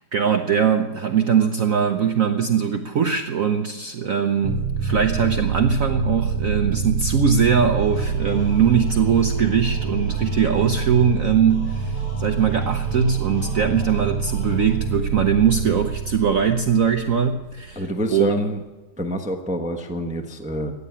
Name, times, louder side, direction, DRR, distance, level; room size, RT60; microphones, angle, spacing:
voice 1, 0.0-17.8 18.1-18.4, right 7 dB, 65° right, 6 dB, 0.8 m, -21 dB
sound 1, 4.4-17.9, right 5 dB, 85° right, 2.0 m, -26 dB
sound 2, 7.8-15.2, equal, 65° left, 4.0 m, -42 dB
voice 2, 17.7-18.6 19.0-20.7, equal, 5° right, 5 dB, 0.6 m, -27 dB
15.0 x 9.5 x 8.5 m, 1.2 s
omnidirectional pair, 2.3 m